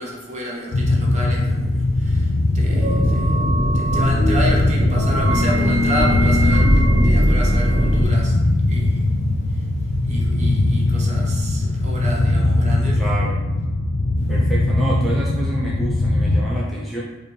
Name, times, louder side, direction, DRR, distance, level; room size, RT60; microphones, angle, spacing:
voice 1, 0.0-13.0 14.2-14.3, equal, 35° right, -2 dB, 0.8 m, -31 dB
sound 1, 0.7-16.4, left 2 dB, 75° left, 0.5 m, -20 dB
sound 2, 2.6-8.0, equal, 65° right, 1.0 m, -19 dB
voice 2, 12.9-13.4 14.3-17.0, right 1 dB, ahead, -5 dB, 0.5 m, -28 dB
4.9 x 2.5 x 3.2 m, 1.1 s
head